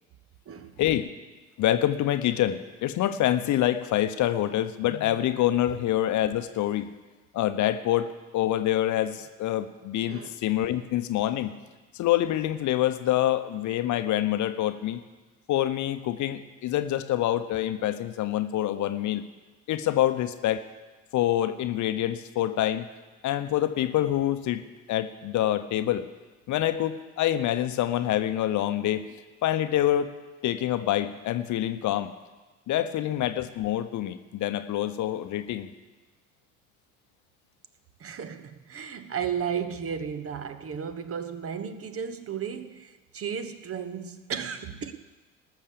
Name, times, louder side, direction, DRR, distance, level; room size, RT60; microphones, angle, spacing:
voice 1, 0.8-1.1 1.6-6.9 7.3-11.5 11.9-15.0 15.5-19.2 19.7-20.6 21.1-22.9 23.2-26.0 26.5-29.1 29.4-30.1 30.4-32.1 32.7-35.7, left 12 dB, 50° left, 0.9 m, -26 dB
voice 2, 38.0-44.9, right 7 dB, 35° right, 1.0 m, -34 dB
19.0 x 6.6 x 6.7 m
figure-of-eight pair, 55°, 39 cm